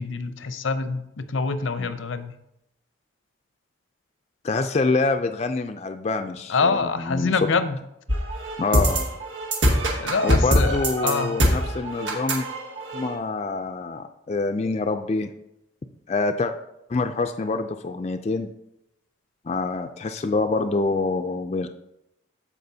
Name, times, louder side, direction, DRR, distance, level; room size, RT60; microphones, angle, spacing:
voice 1, 0.0-2.3 6.5-7.8 10.0-11.4, left 4 dB, 85° left, 11 dB, 0.6 m, -25 dB
voice 2, 4.4-7.5 8.6-9.1 10.2-12.5 12.9-15.3 16.1-16.5 16.9-18.5 19.5-21.7, left 3 dB, 35° left, 6 dB, 0.3 m, -26 dB
sound 1, 8.1-13.1, equal, 80° right, 1.7 m, -23 dB
14.0 x 5.0 x 2.7 m, 0.85 s
head